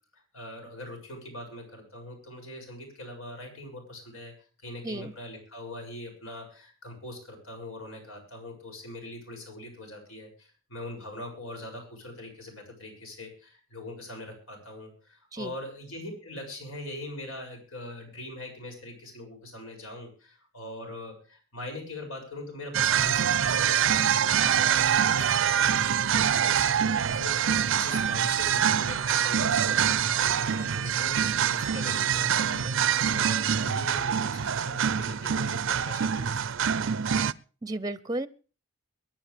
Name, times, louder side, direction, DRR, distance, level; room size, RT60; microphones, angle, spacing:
voice 1, 0.1-4.3 4.6-36.9, left 1 dB, 80° left, 3 dB, 7.1 m, -42 dB
sound 1, 22.7-37.3, right 8 dB, 65° right, 0.6 m, -25 dB
voice 2, 37.6-38.3, right 1 dB, 20° right, 15 dB, 0.7 m, -33 dB
23.0 x 11.0 x 3.4 m, 0.38 s
head